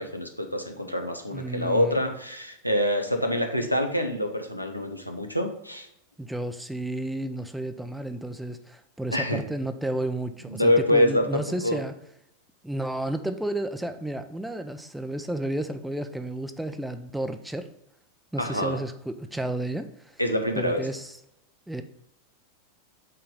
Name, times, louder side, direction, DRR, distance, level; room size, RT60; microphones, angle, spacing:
voice 1, 0.0-5.9 9.1-9.4 10.5-11.8 18.4-18.8 20.2-20.8, left 1 dB, 90° left, 4 dB, 0.8 m, -26 dB
voice 2, 1.3-2.0 6.2-11.9 12.6-17.7 18.3-20.2 20.6-21.2 21.7-21.8, right 1 dB, 5° right, 8 dB, 0.5 m, -32 dB
5.6 x 3.9 x 5.2 m, 0.77 s
figure-of-eight pair, 90°, 0 cm